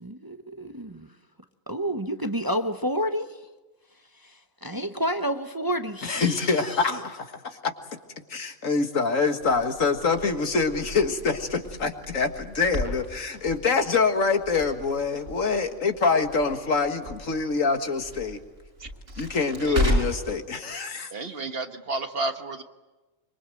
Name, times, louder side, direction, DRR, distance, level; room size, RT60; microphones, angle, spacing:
voice 1, 0.0-1.1 1.7-3.4 4.2-4.3 4.6-7.0, equal, 20° right, 7 dB, 0.8 m, -30 dB
voice 2, 6.0-7.7 8.3-18.4 19.2-21.1, left 4 dB, 85° left, 6 dB, 2.1 m, -25 dB
Crackle, 9.4-20.3, equal, 70° right, 6.4 m, -34 dB
voice 3, 19.6-20.0 21.1-22.6, right 3 dB, 50° right, 7 dB, 1.5 m, -32 dB
25.0 x 23.5 x 7.7 m, 1.2 s
omnidirectional pair, 1.3 m